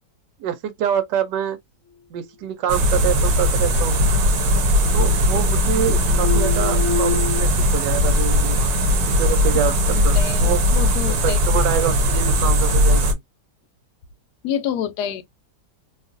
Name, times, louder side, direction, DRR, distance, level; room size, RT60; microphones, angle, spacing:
voice 1, 0.4-1.6 2.1-4.0 4.9-8.6 9.1-10.6 11.1-13.2, right 9 dB, 85° right, 1.3 m, -26 dB
sound 1, 2.7-13.1, left 1 dB, 65° right, 1.1 m, -19 dB
sound 2, 3.4-4.3 4.6-5.6 5.8-7.4, left 5 dB, 55° left, 0.8 m, -28 dB
voice 2, 9.9-11.4 14.4-15.2, left 9 dB, 75° left, 1.1 m, -27 dB
2.9 x 2.4 x 2.4 m
omnidirectional pair, 1.8 m